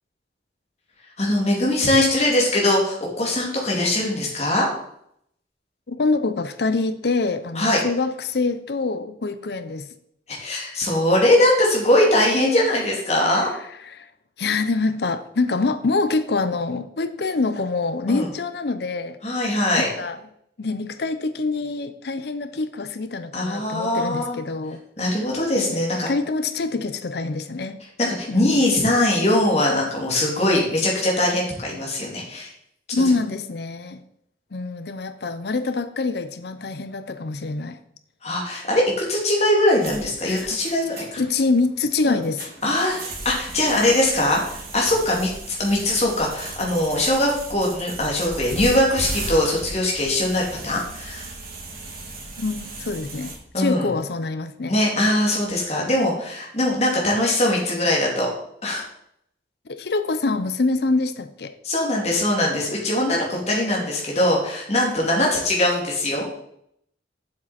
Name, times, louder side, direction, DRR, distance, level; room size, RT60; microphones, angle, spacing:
voice 1, 1.2-4.7 7.6-7.8 10.3-13.5 18.1-18.3 19.2-19.9 23.3-24.4 25.0-26.1 28.0-32.5 38.2-38.8 39.1-41.2 42.1-42.2 42.6-51.3 53.5-53.9 54.7-58.3 58.6-58.8 61.6-66.4, left 1 dB, 35° left, -2 dB, 2.4 m, -21 dB
voice 2, 5.9-9.9 13.8-14.1 14.4-19.2 20.0-20.2 20.6-24.8 25.5-27.8 28.3-28.6 32.9-34.0 34.5-37.8 40.2-40.5 41.2-42.5 52.4-54.7 59.7-61.5, left 3 dB, 60° left, 11 dB, 0.6 m, -25 dB
sound 1, 39.8-53.3, right 2 dB, 50° right, 2.3 m, -36 dB
7.5 x 7.2 x 4.2 m, 0.72 s
head